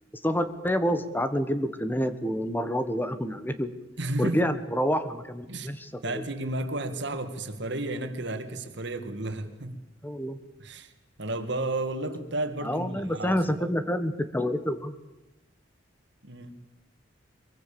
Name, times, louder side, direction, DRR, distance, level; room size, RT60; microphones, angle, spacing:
voice 1, 0.2-3.7 4.2-6.2 10.0-10.4 12.6-14.9, equal, 10° left, 11 dB, 1.3 m, -28 dB
voice 2, 4.0-4.4 5.5-5.7 6.0-9.8 10.6-10.9 11.2-13.7 16.2-16.6, right 2 dB, 65° right, 8 dB, 2.3 m, -32 dB
23.5 x 23.5 x 7.0 m, 0.96 s
head